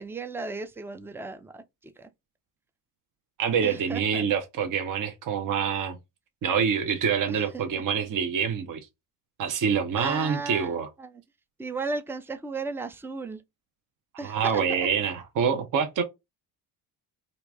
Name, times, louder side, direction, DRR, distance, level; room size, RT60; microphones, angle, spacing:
voice 1, 0.0-2.1 3.6-4.2 7.3-7.4 7.7-7.8 10.0-11.2 11.6-13.4 14.2-14.9, right 3 dB, 5° right, 0.4 m, -35 dB
voice 2, 3.4-6.0 6.4-8.8 9.4-10.9 14.2-16.0, right 7 dB, 45° right, 0.8 m, -26 dB
3.0 x 2.5 x 3.3 m
supercardioid pair, 60°, 46 cm